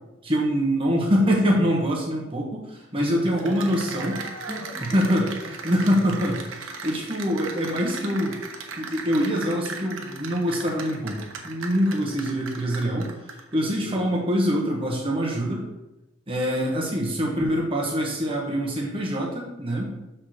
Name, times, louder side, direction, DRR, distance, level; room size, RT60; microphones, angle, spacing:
voice 1, 0.2-4.1 4.9-5.3 5.6-8.4 8.8-13.1 13.5-15.7 16.3-19.9, equal, 25° right, -2 dB, 1.3 m, -24 dB
voice 2, 3.0-5.7 13.7-14.0, equal, ahead, -4 dB, 1.2 m, -38 dB
Cheering / Applause, 3.2-13.6, right 4 dB, 75° right, 1.1 m, -37 dB
6.1 x 4.4 x 6.4 m, 0.99 s
head